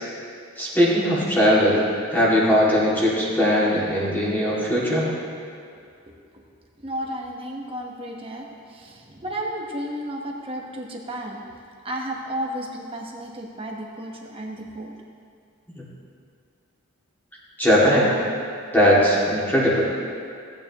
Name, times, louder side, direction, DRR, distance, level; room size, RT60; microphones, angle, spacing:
voice 1, 0.6-1.8 2.1-5.1 15.8-15.9 17.6-18.1 18.7-19.9, equal, 10° left, -7 dB, 2.3 m, -19 dB
voice 2, 6.1-6.4 6.8-11.4 11.8-15.0, right 1 dB, 25° right, -1 dB, 1.2 m, -33 dB
17.5 x 9.0 x 3.0 m, 2.3 s
head